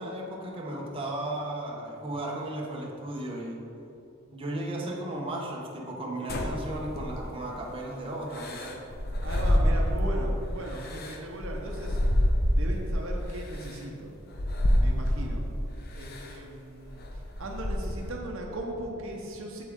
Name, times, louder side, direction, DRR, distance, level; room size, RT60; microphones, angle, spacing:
voice 1, 0.0-3.7 4.3-8.8, right 1 dB, 25° right, -3 dB, 1.1 m, -35 dB
sound 1, 6.3-7.5 8.3-10.3 10.7-12.9 13.6-13.7 14.3-15.5 16.0-16.3 16.8-18.1, equal, 50° left, 0.8 m, -27 dB
voice 2, 9.2-12.0 12.5-14.1 14.8-15.4 16.0-19.6, right 1 dB, 65° right, 0 dB, 1.0 m, -38 dB
8.2 x 7.5 x 3.7 m, 2.7 s
head